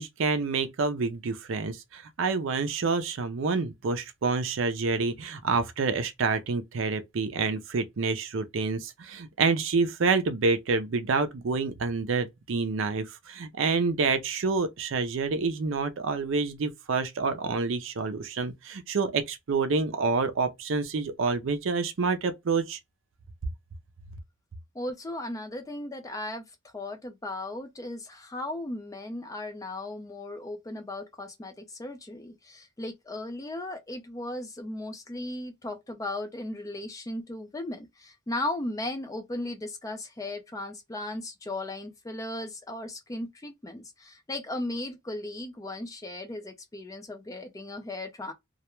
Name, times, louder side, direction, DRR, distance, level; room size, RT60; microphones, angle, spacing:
voice 1, 0.0-22.8, right 4 dB, 65° right, 0.5 m, -28 dB
voice 2, 24.7-26.5 26.7-48.3, left 1 dB, 15° left, 0.3 m, -36 dB
2.3 x 2.1 x 2.9 m
head